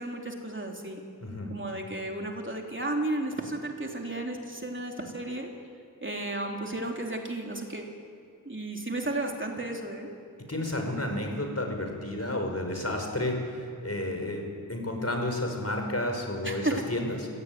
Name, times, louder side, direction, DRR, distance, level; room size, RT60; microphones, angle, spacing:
voice 1, 0.0-1.0 1.5-5.5 6.0-7.9 8.5-10.1 16.4-16.8, right 2 dB, 35° right, 1 dB, 3.6 m, -33 dB
voice 2, 1.2-1.5 10.5-17.3, left 1 dB, 45° left, 3 dB, 5.6 m, -31 dB
25.5 x 17.0 x 9.6 m, 2.6 s
wide cardioid pair, 45°, 36 cm